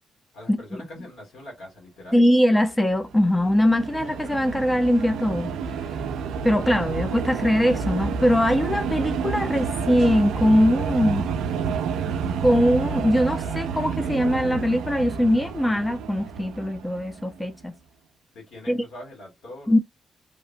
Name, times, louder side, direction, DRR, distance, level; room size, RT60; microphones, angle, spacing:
voice 1, 0.3-2.2 18.3-19.7, left 1 dB, 80° left, 1.6 m, -42 dB
voice 2, 2.1-5.6 6.4-11.3 12.4-17.8 18.7-18.8 19.7-19.8, equal, 15° left, 0.5 m, -21 dB
sound 1, 2.9-17.4, right 6 dB, 85° right, 0.3 m, -29 dB
2.7 x 2.0 x 2.5 m
supercardioid pair, 60°, 0 cm